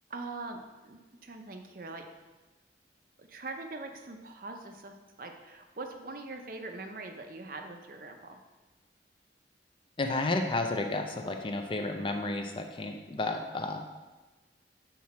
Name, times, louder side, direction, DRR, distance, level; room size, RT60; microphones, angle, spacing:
voice 1, 0.1-2.1 3.2-8.4, right 3 dB, 50° right, 5 dB, 0.6 m, -42 dB
voice 2, 10.0-13.8, left 2 dB, 30° left, 4 dB, 0.5 m, -32 dB
5.9 x 4.8 x 4.2 m, 1.2 s
head